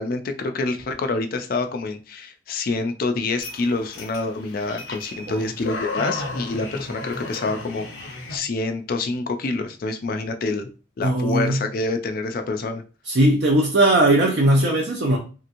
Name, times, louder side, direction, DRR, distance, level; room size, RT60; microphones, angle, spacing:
voice 1, 0.0-10.7 11.0-12.8, left 3 dB, 50° left, 7 dB, 0.4 m, -27 dB
sound 1, 3.4-8.4, left 3 dB, 80° left, 0.8 m, -34 dB
voice 2, 11.0-11.6 13.1-15.2, right 1 dB, 60° right, -1 dB, 0.5 m, -19 dB
3.3 x 2.9 x 2.5 m, 0.35 s
head